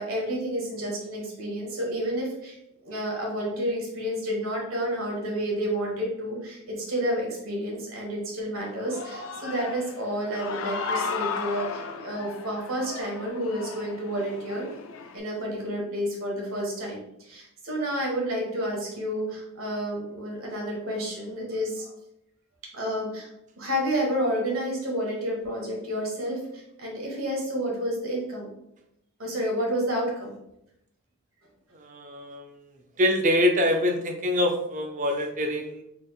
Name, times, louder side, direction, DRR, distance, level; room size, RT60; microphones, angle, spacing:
voice 1, 0.0-2.6 2.8-14.6 15.1-21.9 22.7-23.3 23.6-28.5 29.2-30.3, equal, 75° right, -1 dB, 1.4 m, -30 dB
Human voice / Cheering, 8.6-15.2, left 5 dB, 70° left, 0.4 m, -35 dB
voice 2, 31.7-32.5 33.0-35.8, left 1 dB, 35° right, 3 dB, 0.5 m, -25 dB
4.1 x 3.5 x 2.4 m, 0.81 s
head